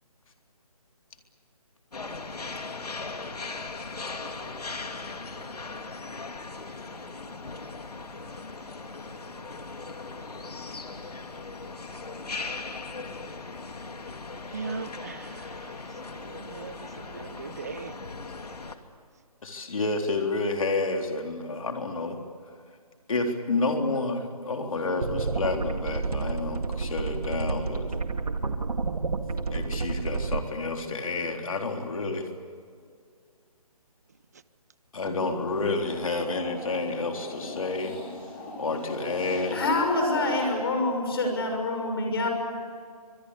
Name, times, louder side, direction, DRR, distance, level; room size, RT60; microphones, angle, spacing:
sound 1, 1.9-18.8, left 3 dB, 90° left, 2.7 m, -38 dB
voice 1, 14.5-15.8 16.1-18.0 35.1-35.4, right 5 dB, 25° right, 16 dB, 0.7 m, -39 dB
voice 2, 19.4-22.2 23.1-27.9 29.5-32.3 34.9-37.9 38.6-39.6, left 3 dB, 60° left, 3 dB, 3.8 m, -29 dB
sound 2, 25.0-30.4, right 4 dB, 75° right, 2.2 m, -30 dB
Ghostly chatter, 35.3-40.5, left 1 dB, 15° left, 4.9 m, -39 dB
voice 3, 39.5-42.3, left 2 dB, 40° left, 4 dB, 6.5 m, -26 dB
24.5 x 22.0 x 8.4 m, 2.2 s
hypercardioid pair, 170°, 19 cm